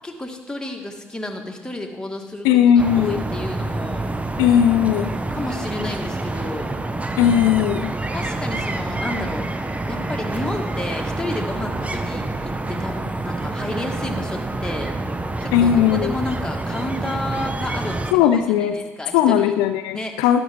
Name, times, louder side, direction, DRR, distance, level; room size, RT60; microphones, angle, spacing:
voice 1, 0.0-2.5 2.8-4.0 5.3-6.7 8.1-14.9 15.4-15.7 16.0-19.5 19.9-20.2, left 1 dB, 10° left, 2 dB, 1.9 m, -31 dB
voice 2, 2.4-3.3 4.4-5.2 7.2-7.9 15.5-16.1 18.1-18.8 19.1-20.4, left 9 dB, 70° left, 9 dB, 0.4 m, -17 dB
sound 1, 2.8-18.1, right 2 dB, 20° right, 0.8 m, -27 dB
12.0 x 9.6 x 3.6 m, 1.1 s
figure-of-eight pair, 45°, 7 cm